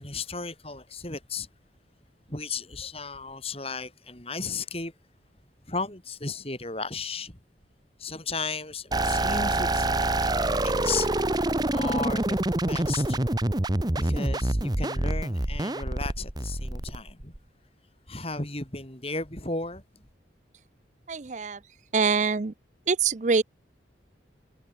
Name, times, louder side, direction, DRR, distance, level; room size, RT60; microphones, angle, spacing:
voice 1, 0.0-1.5 2.3-4.9 5.7-7.4 8.0-11.1 11.7-12.4 12.7-13.2 14.0-17.3 18.1-20.0, left 4 dB, 30° left, 6.3 m, -35 dB
sound 1, 8.9-17.4, right 1 dB, 20° right, 1.0 m, -26 dB
voice 2, 21.1-21.6 21.9-22.5 22.9-23.4, right 5 dB, 40° right, 0.5 m, -24 dB
head